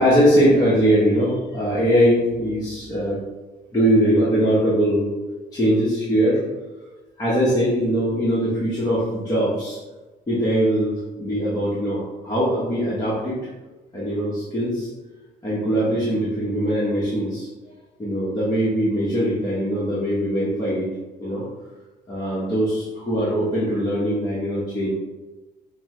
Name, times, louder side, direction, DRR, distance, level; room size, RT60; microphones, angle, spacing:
voice 1, 0.0-3.2 3.7-5.1 5.5-6.4 7.2-9.8 10.3-13.4 13.9-14.9 15.4-17.5 18.0-20.9 21.2-21.4 22.1-24.9, equal, 20° left, -10 dB, 1.2 m, -21 dB
5.5 x 2.2 x 3.1 m, 1.2 s
cardioid pair, 110°, 17 cm